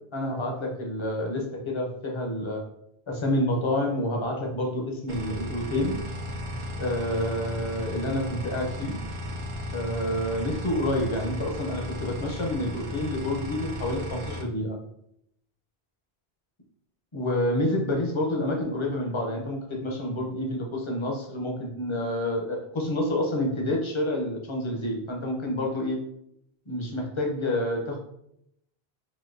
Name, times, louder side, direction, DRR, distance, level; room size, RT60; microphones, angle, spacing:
voice 1, 0.1-2.6 3.1-6.0 6.8-9.0 9.7-14.8 17.1-26.0 26.7-28.0, left 1 dB, 35° left, 1 dB, 0.6 m, -28 dB
sound 1, 5.1-14.4, equal, 55° right, 0.6 m, -35 dB
3.9 x 2.7 x 2.6 m, 0.75 s
omnidirectional pair, 1.1 m